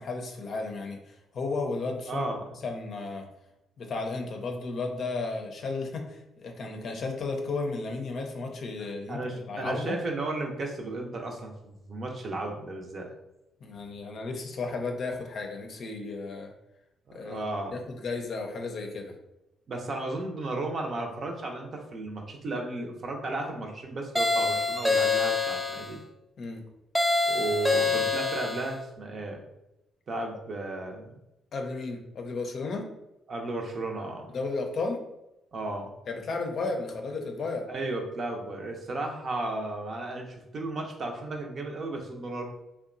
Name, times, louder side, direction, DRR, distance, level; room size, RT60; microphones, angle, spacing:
voice 1, 0.0-2.3 2.6-3.3 3.8-10.0 13.6-16.5 17.1-19.1 26.4-26.6 31.5-32.8 34.3-35.0 36.1-37.6, left 3 dB, 60° left, 2 dB, 0.5 m, -34 dB
voice 2, 2.1-2.5 9.1-13.1 17.1-17.7 19.7-26.0 27.3-29.4 30.1-31.1 33.3-34.3 35.5-35.9 37.7-42.4, right 2 dB, 55° right, 1 dB, 0.6 m, -34 dB
sound 1, 24.2-25.9 27.0-28.7, left 3 dB, 5° right, 0.4 m, -26 dB
2.8 x 2.1 x 2.5 m, 0.91 s
hypercardioid pair, 50°, 0 cm